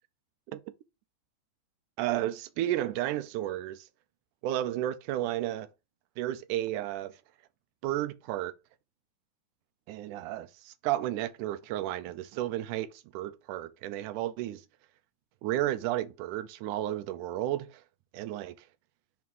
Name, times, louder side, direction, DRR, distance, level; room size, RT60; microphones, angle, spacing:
voice 1, 2.0-3.9 4.4-5.7 6.2-7.2 7.8-8.5 9.9-14.7 15.4-17.8 18.1-18.6, right 13 dB, 85° right, 2.2 m, -32 dB
5.4 x 4.7 x 5.4 m
omnidirectional pair, 3.5 m